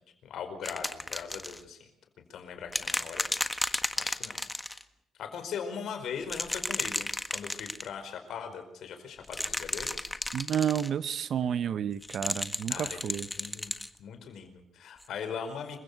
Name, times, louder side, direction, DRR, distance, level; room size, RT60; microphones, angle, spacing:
voice 1, 0.2-1.9 2.3-3.3 4.0-4.4 5.2-10.1 12.7-13.7 14.0-15.8, left 6 dB, 70° left, 8 dB, 4.8 m, -40 dB
sound 1, 0.6-1.6 2.7-4.8 6.2-7.9 9.2-10.9 12.0-13.9 15.0-15.1, left 1 dB, 10° left, 1.5 m, -33 dB
voice 2, 10.3-13.3, right 9 dB, 60° right, 15 dB, 1.0 m, -30 dB
27.5 x 16.0 x 6.7 m, 0.81 s
cardioid pair, 90°, 0 cm